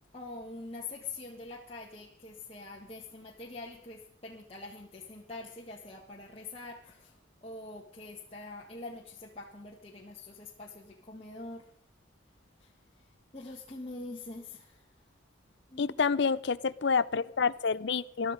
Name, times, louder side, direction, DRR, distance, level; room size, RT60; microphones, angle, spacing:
voice 1, 0.1-11.7 12.6-14.9 15.7-16.0, left 3 dB, 30° left, -2 dB, 1.6 m, -45 dB
voice 2, 15.8-18.3, left 5 dB, 60° left, 16 dB, 0.5 m, -28 dB
21.0 x 12.5 x 5.2 m, 0.69 s
head